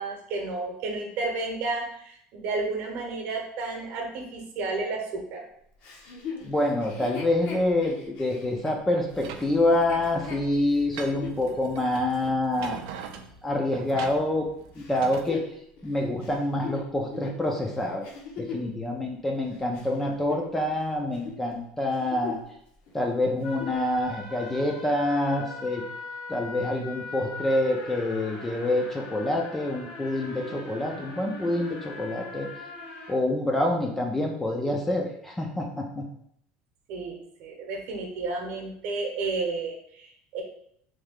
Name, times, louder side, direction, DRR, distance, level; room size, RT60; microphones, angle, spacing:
voice 1, 0.0-5.4 36.9-40.4, right 3 dB, 50° right, 2 dB, 0.8 m, -32 dB
Chuckle chortle, 5.8-11.4 12.0-12.1 14.8-18.7 19.3-20.8 21.1-21.4 21.8-22.6 22.9-23.0 23.3-23.8 24.5-24.6, left 5 dB, 50° left, 0.7 m, -40 dB
voice 2, 6.4-12.8 13.4-14.5 14.8-15.4 15.8-18.0 18.4-22.4 22.9-25.8 26.3-32.5 33.1-36.1, left 1 dB, 10° left, 1 dB, 0.3 m, -27 dB
sound 1, 9.1-15.3, right 7 dB, 70° right, 0.4 m, -42 dB
sound 2, 23.4-33.1, left 2 dB, 80° left, 1.2 m, -41 dB
3.2 x 2.7 x 3.6 m, 0.70 s
cardioid pair, 165°, 3 cm